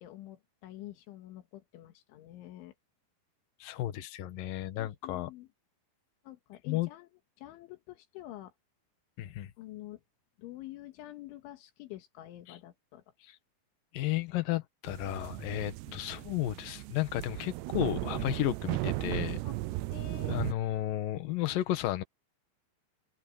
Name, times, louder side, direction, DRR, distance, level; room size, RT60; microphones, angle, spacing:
voice 1, 0.0-2.7 4.8-5.5 6.3-7.1 7.4-8.5 9.6-10.0 10.4-13.0 15.9-16.0 19.4-19.6 19.9-20.5, left 15 dB, 90° left, 4.0 m, -47 dB
voice 2, 3.6-5.3 6.7-6.9 9.2-9.5 12.5-12.6 13.3-13.4 13.9-19.4 20.3-22.0, left 14 dB, 65° left, 2.4 m, -33 dB
sound 1, 14.9-20.5, right 20 dB, 85° right, 2.5 m, -36 dB
omnidirectional pair, 5.4 m